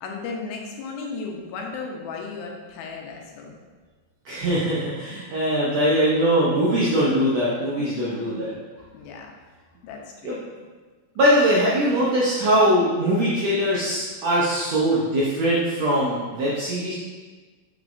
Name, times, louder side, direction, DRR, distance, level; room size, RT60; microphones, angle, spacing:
voice 1, 0.0-3.7 7.8-8.4 8.9-9.3 9.8-10.4, left 4 dB, 90° left, 1 dB, 2.7 m, -35 dB
voice 2, 4.2-8.5 10.2-10.4 11.2-16.9, equal, 80° right, -6 dB, 1.5 m, -21 dB
6.6 x 6.3 x 2.6 m, 1.4 s
omnidirectional pair, 4.2 m